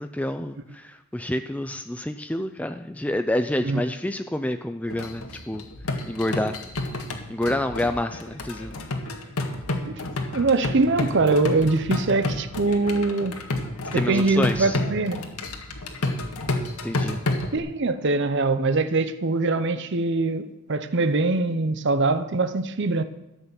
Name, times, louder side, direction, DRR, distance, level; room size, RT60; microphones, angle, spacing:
voice 1, 0.0-5.6 6.1-6.6 7.3-8.7 13.9-14.8 16.8-17.2, left 1 dB, 5° left, 0.4 m, -28 dB
sound 1, 4.9-17.6, left 2 dB, 85° left, 1.7 m, -30 dB
voice 2, 10.3-13.4 14.1-15.2 17.5-23.0, right 3 dB, 50° right, 0.7 m, -23 dB
13.0 x 8.2 x 7.0 m
head